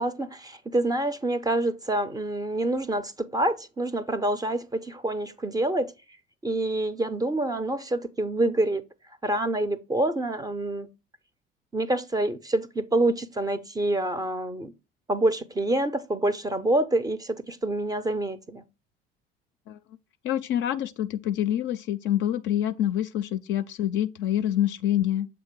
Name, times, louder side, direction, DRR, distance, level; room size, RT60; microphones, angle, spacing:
voice 1, 0.0-5.9 6.4-8.8 9.2-10.9 11.7-14.7 15.1-18.6, right 1 dB, 15° right, 0.5 m, -27 dB
voice 2, 20.2-25.3, left 11 dB, 40° left, 0.4 m, -26 dB
7.1 x 3.0 x 4.5 m
figure-of-eight pair, 60°, 29 cm